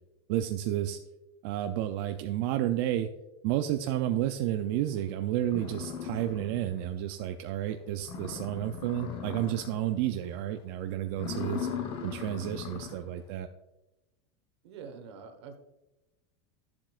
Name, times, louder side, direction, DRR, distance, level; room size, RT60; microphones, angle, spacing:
voice 1, 0.3-1.0 1.4-3.1 3.4-11.7 12.0-13.5, right 12 dB, 55° right, 7 dB, 0.5 m, -31 dB
sound 1, 5.0-5.1 5.4-6.8 7.2-7.3 7.7-7.8 8.0-9.9 10.3-10.6 11.1-13.1, left 7 dB, 35° left, 1.0 m, -38 dB
voice 2, 11.2-11.5 14.6-15.6, right 6 dB, 75° right, 7 dB, 1.3 m, -46 dB
11.5 x 7.4 x 2.4 m, 1.0 s
supercardioid pair, 135°, 14 cm